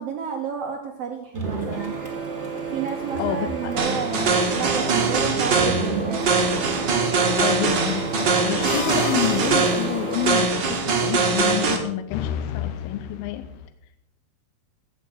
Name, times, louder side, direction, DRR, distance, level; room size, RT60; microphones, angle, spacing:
voice 1, 0.0-1.9 2.7-6.4, right 7 dB, 80° right, 2 dB, 1.4 m, -31 dB
Printer, 1.3-10.3, right 4 dB, 20° right, 2.1 m, -30 dB
voice 2, 3.2-3.7 7.4-13.5, left 13 dB, 90° left, 9 dB, 2.5 m, -29 dB
sound 1, 3.8-11.8, right 4 dB, 50° right, 1.3 m, -22 dB
sound 2, 8.6-10.3 12.1-13.7, left 9 dB, 70° left, 2.1 m, -33 dB
15.5 x 6.1 x 6.1 m, 0.80 s
omnidirectional pair, 4.2 m